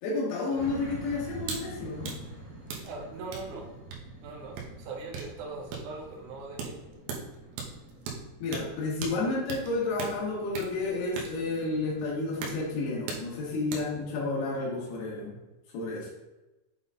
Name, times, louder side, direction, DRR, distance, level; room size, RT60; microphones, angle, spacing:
voice 1, 0.0-2.1 8.4-15.4 15.7-16.1, left 3 dB, 75° left, -4 dB, 3.6 m, -31 dB
sound 1, 0.5-15.3, right 1 dB, 35° right, 1.3 m, -48 dB
sound 2, 1.4-1.6 1.9-14.0, right 4 dB, 85° right, 3.1 m, -41 dB
voice 2, 2.8-3.7 4.2-6.7, right 3 dB, 70° right, -1 dB, 2.0 m, -41 dB
8.0 x 4.0 x 3.8 m, 1.0 s
omnidirectional pair, 4.9 m